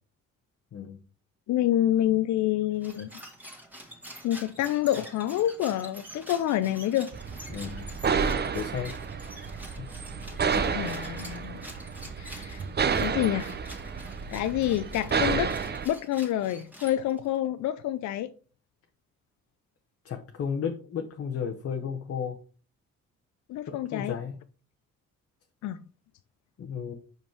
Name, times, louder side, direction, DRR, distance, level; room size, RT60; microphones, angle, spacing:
voice 1, 1.5-3.1 4.2-7.1 10.6-11.6 12.2-12.6 13.0-13.6 14.3-15.5 15.8-18.3 23.5-24.2 25.6-25.8, left 12 dB, 70° left, 0.5 m, -27 dB
sound 1, 2.7-17.4, equal, 5° right, 1.8 m, -47 dB
sound 2, 7.1-15.9, right 6 dB, 35° right, 0.7 m, -30 dB
voice 2, 7.5-7.9 8.5-8.9 9.8-9.9 20.0-22.4 23.7-24.4 26.6-26.9, left 7 dB, 50° left, 0.9 m, -33 dB
5.4 x 5.2 x 4.5 m
cardioid pair, 90°, 30 cm